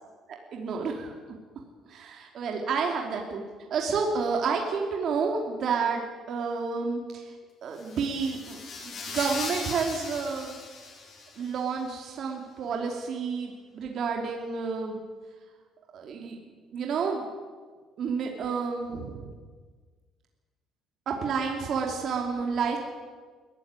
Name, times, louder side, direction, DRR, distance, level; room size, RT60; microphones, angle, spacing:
voice 1, 0.3-1.4 1.9-3.4 3.7-6.0 6.3-7.3 7.6-10.6 11.4-15.0 15.9-16.4 16.7-17.2 18.0-19.3 21.1-22.8, right 5 dB, 50° right, 1 dB, 2.9 m, -30 dB
sound 1, 7.8-11.6, left 4 dB, 40° left, 4.1 m, -39 dB
22.0 x 14.5 x 9.7 m, 1.5 s
cardioid pair, 145°, 0 cm